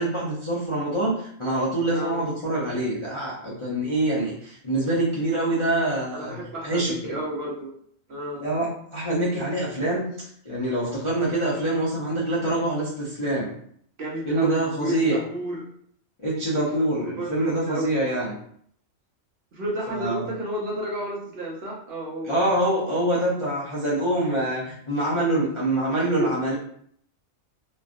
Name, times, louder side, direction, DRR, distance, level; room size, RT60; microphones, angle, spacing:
voice 1, 0.0-7.2 8.4-13.5 14.3-15.2 16.2-18.4 19.9-20.2 22.2-26.6, right 1 dB, 40° left, -8 dB, 0.4 m, -25 dB
voice 2, 6.1-7.7 8.1-8.4 10.8-10.9 14.0-15.6 16.5-17.9 19.5-22.4 25.9-26.3, right 1 dB, 55° right, -3 dB, 0.8 m, -31 dB
3.1 x 2.4 x 2.5 m, 0.64 s
omnidirectional pair, 1.4 m